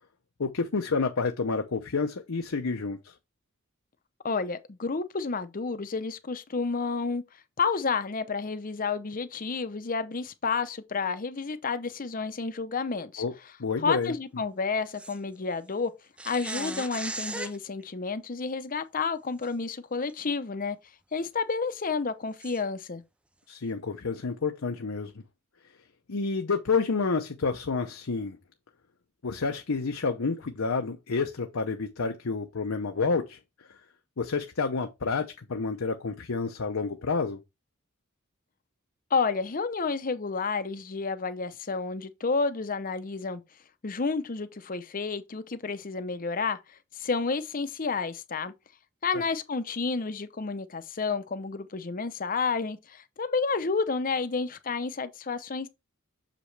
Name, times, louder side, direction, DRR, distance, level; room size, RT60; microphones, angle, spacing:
voice 1, 0.4-3.1 13.2-13.3 13.6-14.1 23.5-25.1 26.1-28.4 29.2-33.4 34.2-37.4, left 4 dB, 80° left, 0.7 m, -29 dB
voice 2, 4.2-7.2 7.6-13.2 13.8-15.9 16.3-20.8 21.1-23.0 39.1-43.4 43.8-48.5 49.0-55.7, left 4 dB, 40° left, 0.7 m, -30 dB
sound 1, 14.9-15.2 16.2-17.6 19.4-19.5 20.1-20.2 22.4-22.6, right 2 dB, 5° right, 0.4 m, -36 dB
6.8 x 5.0 x 3.3 m
head